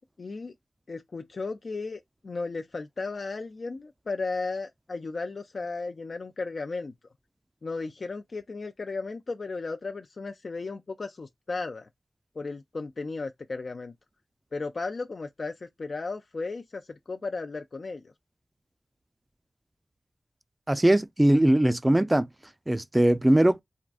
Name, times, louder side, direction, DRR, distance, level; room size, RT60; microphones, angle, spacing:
voice 1, 0.2-0.5 0.9-6.9 7.6-11.9 12.4-13.9 14.5-18.1, left 3 dB, 65° left, 0.3 m, -35 dB
voice 2, 20.7-22.3 22.7-23.6, right 1 dB, 20° right, 0.4 m, -21 dB
3.6 x 2.2 x 2.3 m
cardioid pair, 45°, 0 cm